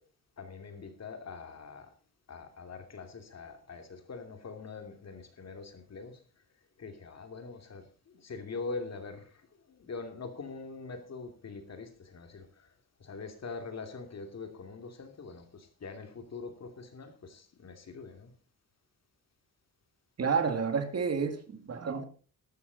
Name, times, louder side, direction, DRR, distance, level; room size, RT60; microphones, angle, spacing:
voice 1, 0.4-1.9 2.3-6.2 6.8-12.7 13.0-18.3, left 4 dB, 50° left, 2.8 m, -43 dB
voice 2, 20.2-22.0, right 5 dB, 45° right, 2.3 m, -30 dB
13.0 x 12.5 x 4.1 m
wide cardioid pair, 130°, 34 cm